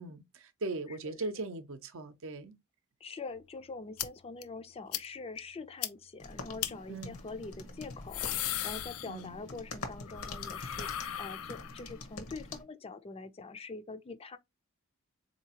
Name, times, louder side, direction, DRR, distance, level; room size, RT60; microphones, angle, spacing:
voice 1, 0.0-2.5 6.9-7.2 9.1-9.4, right 3 dB, 65° right, 0.6 m, -39 dB
voice 2, 3.0-14.4, left 3 dB, 25° left, 0.4 m, -44 dB
sound 1, 4.0-4.1 4.4-4.5 4.9-5.1 5.4-5.5 5.8-5.9 6.6-6.7 7.8-9.5 9.8-12.0, left 12 dB, 90° left, 0.5 m, -37 dB
sound 2, 6.2-12.6, left 3 dB, 75° left, 1.0 m, -45 dB
4.0 x 2.8 x 2.8 m
head